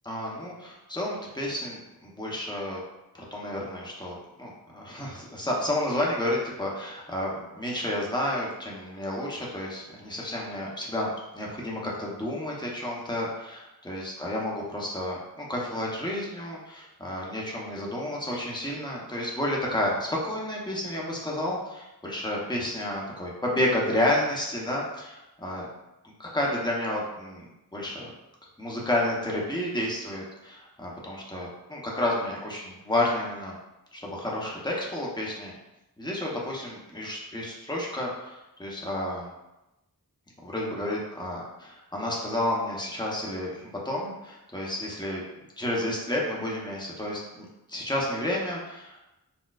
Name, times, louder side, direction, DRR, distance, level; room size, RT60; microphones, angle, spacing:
voice 1, 0.0-2.8 3.1-25.7 26.2-28.1 28.6-33.6 33.9-35.6 36.0-39.3 40.4-45.2 45.6-49.1, left 1 dB, 10° left, -4 dB, 0.7 m, -31 dB
4.1 x 2.2 x 2.3 m, 0.96 s
wide cardioid pair, 65°, 36 cm